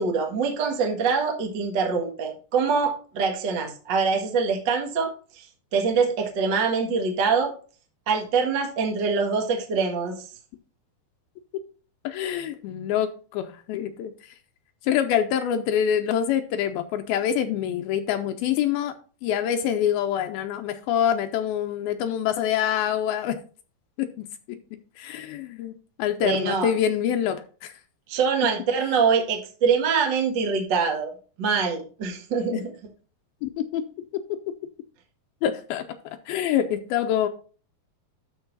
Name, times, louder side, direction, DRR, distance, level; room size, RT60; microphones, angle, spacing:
voice 1, 0.0-5.5 5.7-7.5 8.1-10.1 26.2-26.7 28.1-31.1 31.4-32.6, right 5 dB, 50° right, 2 dB, 1.4 m, -24 dB
voice 2, 12.0-14.1 14.8-18.9 19.2-23.4 24.0-24.1 25.0-25.7 26.0-27.7 32.5-32.6 33.4-33.8 34.1-34.4 35.4-37.3, left 9 dB, 80° left, 8 dB, 2.4 m, -25 dB
12.5 x 4.7 x 4.0 m, 0.39 s
omnidirectional pair, 4.5 m